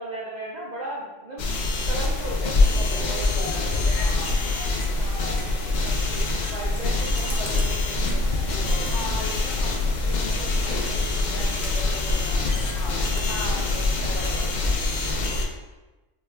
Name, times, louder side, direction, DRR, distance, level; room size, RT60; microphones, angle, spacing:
voice 1, 0.0-4.1 4.5-4.6 5.0-9.3 13.1-14.6, right 1 dB, 85° right, -5 dB, 0.3 m, -37 dB
sound 1, 1.4-15.4, left 2 dB, 90° left, 0.4 m, -24 dB
voice 2, 2.7-4.4 7.1-7.4 8.8-14.5, left 2 dB, 65° left, -3 dB, 1.1 m, -39 dB
sound 2, 6.2-8.8, right 2 dB, 15° right, 0.5 m, -48 dB
Computer keyboard, 6.4-14.6, right 2 dB, 60° right, 0.7 m, -41 dB
4.8 x 2.2 x 2.3 m, 1.1 s
omnidirectional pair, 1.3 m